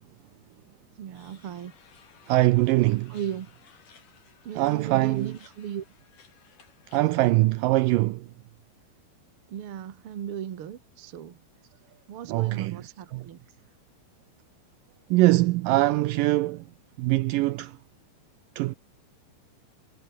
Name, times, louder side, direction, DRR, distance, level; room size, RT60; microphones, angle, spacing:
voice 1, 1.0-1.7 3.1-3.5 4.4-5.8 9.5-11.4 12.1-13.4, right 9 dB, 60° right, 1.4 m, -36 dB
sound 1, 1.1-7.3, left 6 dB, 55° left, 5.1 m, -57 dB
voice 2, 2.3-3.2 4.6-5.3 6.9-8.2 12.3-12.8 13.1-13.2 15.1-16.6 17.0-17.7 18.6-18.7, right 18 dB, 90° right, 1.9 m, -22 dB
omnidirectional pair, 4.6 m